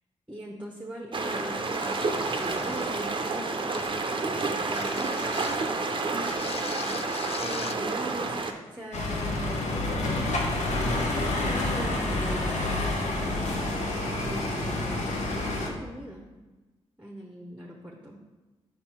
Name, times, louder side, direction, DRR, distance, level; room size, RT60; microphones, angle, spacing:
voice 1, 0.3-6.6 7.4-9.9 10.8-13.9 14.2-16.3 17.0-18.2, right 1 dB, 10° right, 0 dB, 1.0 m, -41 dB
sound 1, 1.1-8.5, right 3 dB, 40° right, 0.7 m, -29 dB
sound 2, 1.7-3.1 3.7-4.0 4.7-5.7 6.1-7.8, left 7 dB, 50° left, 0.4 m, -41 dB
sound 3, 8.9-15.7, left 2 dB, 70° left, 0.9 m, -28 dB
4.9 x 4.4 x 4.4 m, 1.2 s
supercardioid pair, 40°, 13 cm